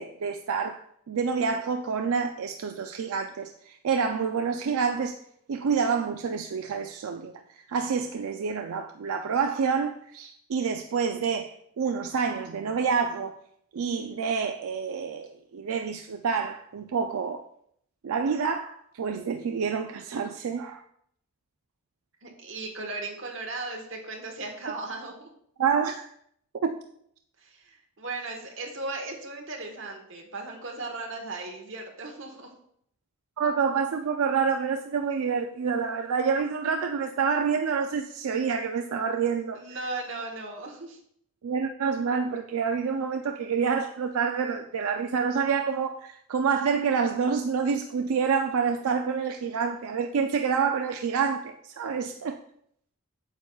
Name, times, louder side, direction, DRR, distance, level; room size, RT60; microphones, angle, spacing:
voice 1, 0.0-5.2 5.5-13.4 13.7-17.4 18.0-20.8 25.6-26.1 26.6-26.8 33.4-39.6 41.4-52.4, right 6 dB, 85° right, 0.4 m, -28 dB
voice 2, 22.2-25.3 27.4-32.5 39.5-41.0, right 3 dB, 60° right, 1.4 m, -37 dB
8.9 x 6.9 x 2.3 m
head